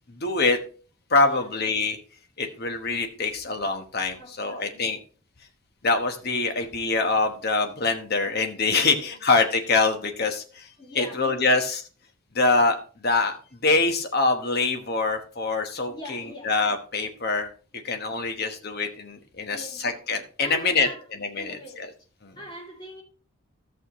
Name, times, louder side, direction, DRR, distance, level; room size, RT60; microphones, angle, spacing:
voice 1, 0.1-0.6 1.1-2.0 2.4-5.0 5.8-10.7 10.9-11.8 12.3-12.8 13.0-13.3 13.6-17.5 17.8-20.9 21.4-21.9 22.2-22.3, left 3 dB, 45° left, 1.1 m, -24 dB
voice 2, 1.2-1.5 4.2-4.9 8.8-9.2 10.8-11.6 15.9-16.6 19.5-19.9 20.4-21.1 21.3-21.9 22.4-23.0, left 1 dB, 20° left, 2.2 m, -42 dB
13.5 x 6.6 x 3.0 m
head